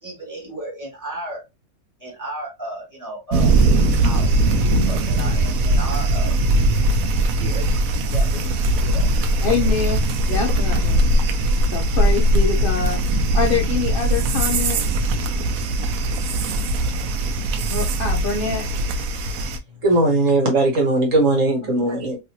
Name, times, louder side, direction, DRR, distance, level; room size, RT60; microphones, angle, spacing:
voice 1, 0.0-1.4 2.0-3.6 4.0-4.5 4.9-6.3 7.2-7.7 8.1-9.1 9.7-9.9, right 1 dB, 10° right, -2 dB, 1.5 m, -34 dB
sound 1, 3.3-19.6, right 1 dB, 70° right, 0.9 m, -20 dB
voice 2, 9.4-10.0 10.3-11.0 11.7-13.0 13.3-14.8 17.7-18.7, left 5 dB, 65° left, 1 dB, 0.5 m, -25 dB
voice 3, 19.8-22.2, right 2 dB, 55° right, 1 dB, 1.3 m, -18 dB
3.1 x 2.8 x 2.7 m, 0.23 s
omnidirectional pair, 1.8 m